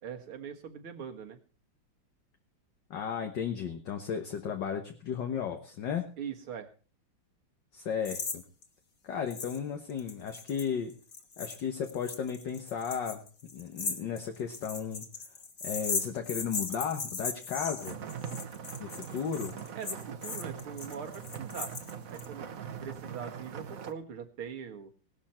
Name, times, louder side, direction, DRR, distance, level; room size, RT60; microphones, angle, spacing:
voice 1, 0.0-1.4 6.2-6.7 19.8-21.7 22.1-22.5 22.8-24.9, right 7 dB, 75° right, 5 dB, 2.5 m, -41 dB
voice 2, 2.9-6.1 7.7-8.4 9.0-10.9 11.4-13.2 13.5-15.1 15.6-18.0 18.8-19.5, left 7 dB, 60° left, 5 dB, 1.8 m, -34 dB
sound 1, 8.1-8.4 8.6-8.7 9.3-9.6 9.9-22.3, left 4 dB, 40° left, 2.0 m, -38 dB
sound 2, 17.8-23.9, right 7 dB, 50° right, 1.3 m, -42 dB
18.0 x 12.5 x 4.4 m, 0.38 s
omnidirectional pair, 2.3 m